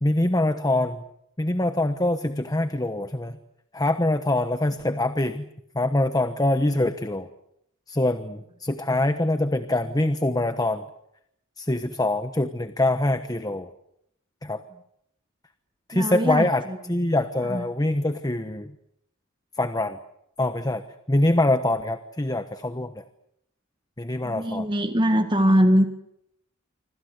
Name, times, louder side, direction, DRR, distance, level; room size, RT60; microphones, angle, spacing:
voice 1, 0.0-1.0 1.4-3.4 3.7-5.5 5.7-7.3 7.9-10.8 11.6-13.7 14.4-14.6 15.9-18.7 19.6-20.0 20.4-22.9 24.0-24.7, left 1 dB, 20° left, 10 dB, 1.1 m, -24 dB
voice 2, 15.9-16.8 17.4-17.6 24.2-25.9, equal, 25° right, 7 dB, 1.7 m, -22 dB
27.5 x 25.5 x 8.1 m, 0.77 s
head